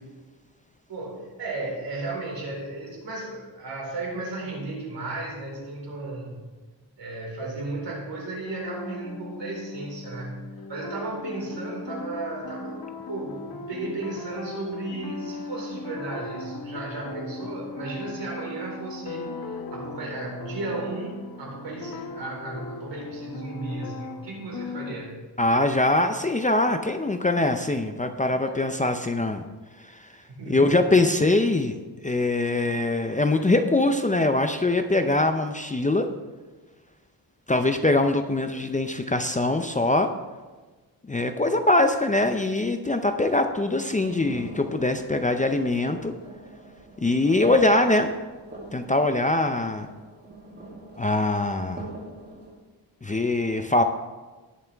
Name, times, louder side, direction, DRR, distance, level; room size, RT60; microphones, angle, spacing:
voice 1, 0.9-6.4 7.0-19.3 19.7-25.2 28.4-28.5 30.3-30.7, right 2 dB, 80° right, -3 dB, 4.3 m, -34 dB
sound 1, 8.3-25.0, left 3 dB, 60° left, 1.1 m, -38 dB
voice 2, 25.4-29.4 29.9-30.1 30.5-31.8 32.0-36.1 37.5-40.1 41.1-46.1 47.0-48.1 48.7-49.9 51.0-51.9 53.0-53.8, left 2 dB, 20° left, 7 dB, 0.5 m, -23 dB
sound 2, 43.9-52.5, right 2 dB, 25° right, 2.8 m, -43 dB
19.0 x 7.0 x 3.4 m, 1.3 s
wide cardioid pair, 155°, 42 cm